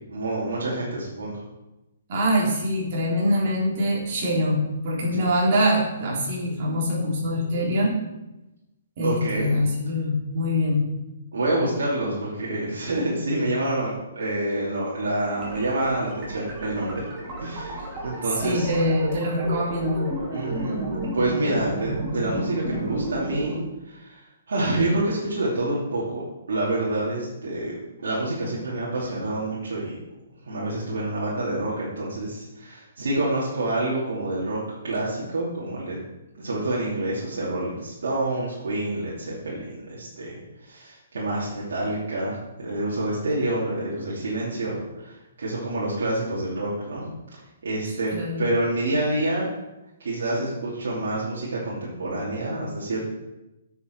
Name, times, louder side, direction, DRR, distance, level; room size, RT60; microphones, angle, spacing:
voice 1, 0.1-1.4 5.0-5.2 7.7-7.8 9.0-9.6 11.3-17.0 17.4-18.7 20.3-20.8 21.1-23.6 23.8-27.7 28.0-30.0 30.4-34.6 34.8-36.0 36.4-40.4 40.6-49.5 50.0-53.0, right 2 dB, 75° right, -7 dB, 3.0 m, -27 dB
voice 2, 2.1-7.9 9.0-10.8 18.4-20.1 48.1-48.4, equal, 45° right, -3 dB, 3.5 m, -24 dB
sound 1, 15.3-23.6, right 1 dB, 20° right, 3.4 m, -32 dB
9.9 x 7.2 x 4.7 m, 0.97 s
hypercardioid pair, 155°, 0 cm